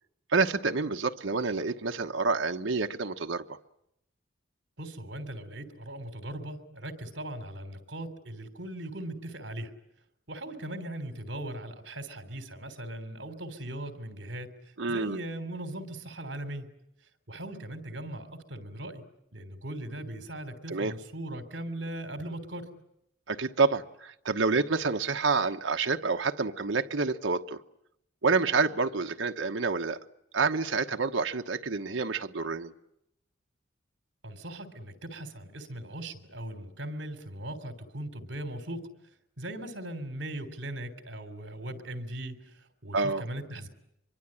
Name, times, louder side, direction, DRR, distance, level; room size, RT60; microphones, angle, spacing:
voice 1, 0.3-3.6 14.8-15.2 20.7-20.9 23.3-27.6 28.2-30.0 30.3-32.7 42.9-43.2, right 4 dB, 80° right, 1.1 m, -28 dB
voice 2, 4.8-9.7 10.3-14.6 14.9-16.7 17.3-19.0 19.3-22.7 34.2-38.9 39.4-43.7, right 1 dB, 65° right, 3.4 m, -39 dB
25.0 x 23.5 x 8.8 m
head